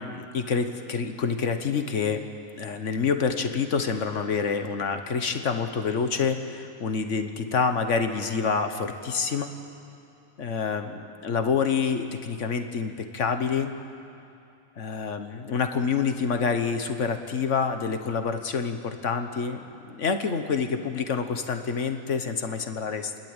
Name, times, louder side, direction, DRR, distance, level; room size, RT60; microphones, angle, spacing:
voice 1, 0.0-2.2 2.6-9.5 10.4-13.7 14.8-19.6 19.9-23.2, left 5 dB, 70° left, 7 dB, 1.4 m, -27 dB
29.5 x 12.0 x 8.9 m, 2.7 s
omnidirectional pair, 1.3 m